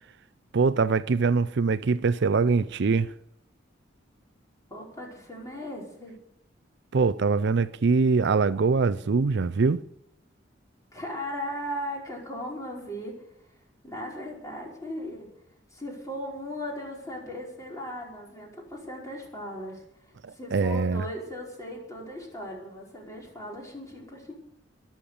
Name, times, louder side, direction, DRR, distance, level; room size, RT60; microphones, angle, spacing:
voice 1, 0.5-3.1 6.9-9.8 20.5-21.0, right 4 dB, 65° right, 0.5 m, -23 dB
voice 2, 4.7-6.2 10.9-13.2 13.8-15.3 15.7-19.8 20.3-24.3, equal, 20° left, 4.9 m, -37 dB
22.0 x 7.4 x 6.9 m
head